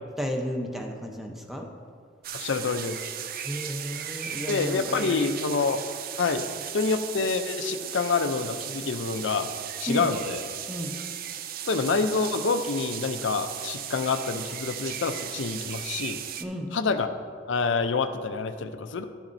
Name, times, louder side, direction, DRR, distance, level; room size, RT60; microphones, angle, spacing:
voice 1, 0.2-1.7 3.4-5.4 6.5-6.6 9.9-10.1 10.7-11.0 16.4-16.7, equal, ahead, 2 dB, 0.7 m, -33 dB
sound 1, 2.2-16.5, right 9 dB, 50° right, 0.4 m, -36 dB
voice 2, 2.3-3.1 4.5-5.8 6.2-6.5 6.7-9.5 9.8-10.4 11.7-16.2 16.7-17.1 17.5-19.0, left 4 dB, 80° left, 9 dB, 0.5 m, -27 dB
12.5 x 7.1 x 2.6 m, 2.2 s
head